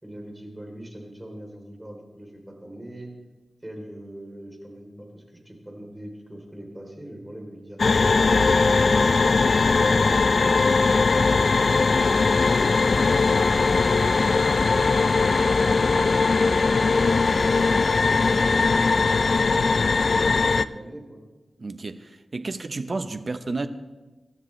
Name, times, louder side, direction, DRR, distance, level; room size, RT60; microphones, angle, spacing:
voice 1, 0.0-3.1 3.6-10.1 15.9-17.4 17.9-18.9 20.2-21.2, right 1 dB, 15° right, 1 dB, 3.5 m, -42 dB
sound 1, 7.8-20.6, left 4 dB, 55° left, 0.4 m, -20 dB
voice 2, 21.6-23.7, right 3 dB, 45° right, 9 dB, 0.8 m, -31 dB
25.5 x 12.5 x 3.3 m, 1.2 s
wide cardioid pair, 105°, 0 cm